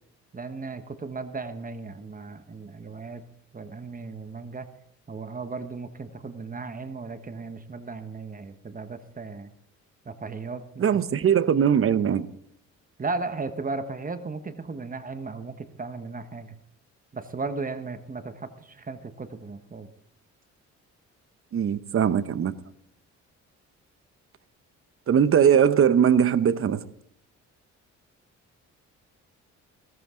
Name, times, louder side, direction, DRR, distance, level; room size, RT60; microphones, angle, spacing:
voice 1, 0.3-3.2 3.5-4.7 5.1-9.5 10.0-11.0 13.0-16.5 17.1-19.9, right 3 dB, 30° right, 1.3 m, -36 dB
voice 2, 10.8-12.3 21.5-22.5 25.1-26.8, right 8 dB, 45° right, 0.9 m, -20 dB
17.0 x 14.0 x 3.8 m
cardioid pair, 90°, 30 cm